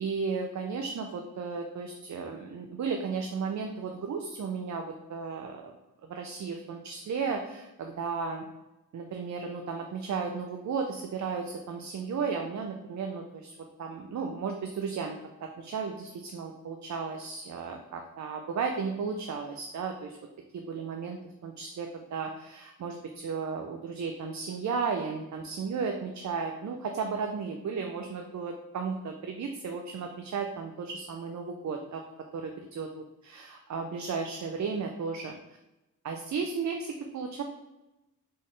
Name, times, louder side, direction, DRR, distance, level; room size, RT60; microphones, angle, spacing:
voice 1, 0.0-5.7 6.1-8.4 8.9-20.2 20.5-32.0 32.3-35.4 36.0-37.4, right 5 dB, 55° right, 3 dB, 0.5 m, -34 dB
4.2 x 3.7 x 3.2 m, 0.99 s
wide cardioid pair, 140°, 33 cm